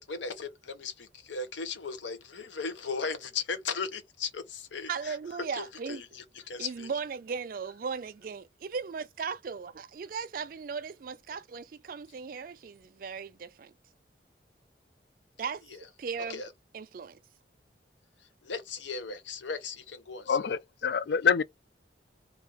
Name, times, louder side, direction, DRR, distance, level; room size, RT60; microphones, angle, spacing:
voice 1, 0.0-5.2 5.5-6.9 16.3-16.5 18.4-20.4, left 4 dB, 90° left, 0.8 m, -37 dB
voice 2, 4.9-6.0 6.6-13.7 15.4-15.6 16.0-16.4 16.7-17.2, right 5 dB, 50° right, 0.4 m, -37 dB
voice 3, 20.3-21.4, left 6 dB, 60° left, 0.3 m, -26 dB
2.8 x 2.3 x 3.5 m
head